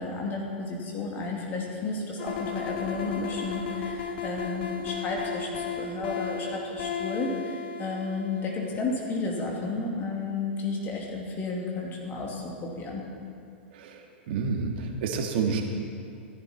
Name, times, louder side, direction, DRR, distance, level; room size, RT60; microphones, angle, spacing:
voice 1, 0.0-13.0, left 3 dB, 30° left, -2 dB, 2.5 m, -32 dB
sound 1, 2.2-9.1, left 6 dB, 60° left, 2.8 m, -35 dB
voice 2, 13.7-15.6, right 5 dB, 60° right, 3 dB, 1.8 m, -29 dB
15.5 x 11.0 x 4.4 m, 2.3 s
hypercardioid pair, 100°, 6 cm